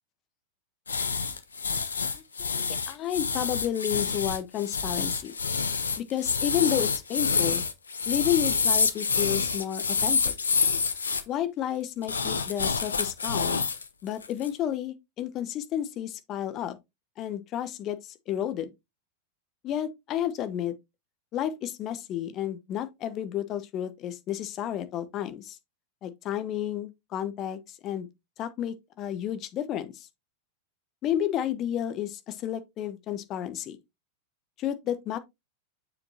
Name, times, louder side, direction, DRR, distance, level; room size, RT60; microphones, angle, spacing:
sound 1, 0.9-11.2 12.0-13.8 14.2-14.5, left 5 dB, 75° left, 0.7 m, -27 dB
voice 1, 2.1-5.3 6.0-7.6 8.1-10.3 11.3-13.6 14.0-16.8 17.2-18.7 19.6-20.8 21.3-25.6 26.0-28.1 28.4-30.1 31.0-33.8 34.6-35.2, left 11 dB, 35° left, 0.8 m, -31 dB
7.0 x 5.4 x 2.8 m
figure-of-eight pair, 90°, 0 cm